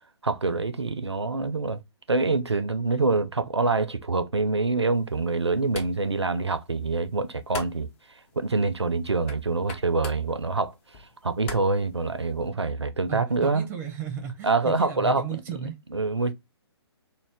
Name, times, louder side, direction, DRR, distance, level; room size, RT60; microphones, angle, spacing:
voice 1, 0.2-1.8 2.1-7.9 8.4-10.7 11.2-13.7 14.4-16.3, right 3 dB, 90° right, 0.4 m, -26 dB
sound 1, 4.9-12.5, left 3 dB, 30° left, 0.6 m, -44 dB
voice 2, 13.1-15.8, right 7 dB, 15° right, 0.6 m, -35 dB
2.5 x 2.1 x 3.3 m
figure-of-eight pair, 130°, 14 cm